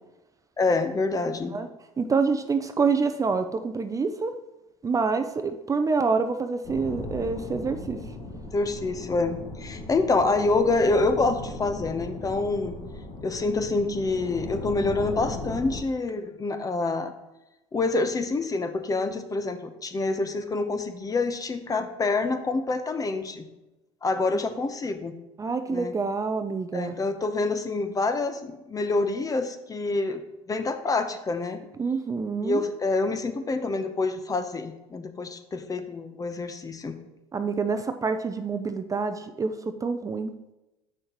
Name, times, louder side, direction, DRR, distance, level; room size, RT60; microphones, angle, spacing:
voice 1, 0.6-1.5 8.5-12.7 13.2-17.1 17.7-23.4 24.0-25.1 25.7-25.9 26.7-30.2 30.5-31.6 32.4-37.1, left 3 dB, 25° left, 8 dB, 0.8 m, -27 dB
voice 2, 2.0-4.3 4.8-8.0 24.3-24.5 25.4-27.0 31.8-32.6 37.3-39.5 39.8-40.3, right 4 dB, 25° right, 8 dB, 0.5 m, -27 dB
sound 1, 6.6-15.8, left 2 dB, 45° left, 2.2 m, -37 dB
7.8 x 6.3 x 3.0 m, 0.97 s
hypercardioid pair, 80°, 14 cm